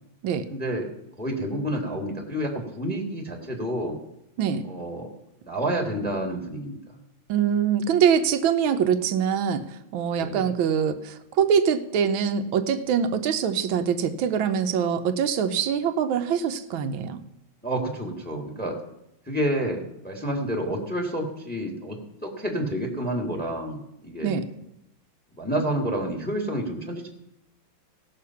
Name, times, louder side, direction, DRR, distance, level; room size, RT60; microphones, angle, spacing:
voice 1, 0.5-0.9 1.2-4.0 4.7-5.1 5.4-6.8 10.2-10.5 17.6-18.8 19.3-24.3 25.4-27.1, right 1 dB, 5° left, 1 dB, 1.7 m, -29 dB
voice 2, 4.4-4.7 7.3-9.7 9.9-17.2 24.2-24.5, right 7 dB, 80° right, 8 dB, 1.6 m, -24 dB
17.0 x 6.7 x 5.7 m, 0.84 s
omnidirectional pair, 2.2 m